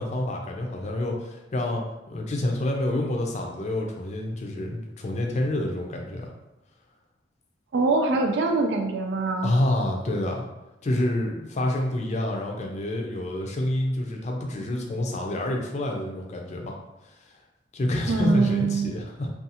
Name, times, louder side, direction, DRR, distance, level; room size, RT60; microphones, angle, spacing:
voice 1, 0.0-1.8 2.1-6.3 9.4-10.4 10.8-16.8 17.7-19.3, left 1 dB, 40° left, 1 dB, 0.4 m, -28 dB
voice 2, 7.7-9.5 18.1-18.9, right 3 dB, 80° right, 4 dB, 0.4 m, -23 dB
2.6 x 2.3 x 2.7 m, 0.95 s
head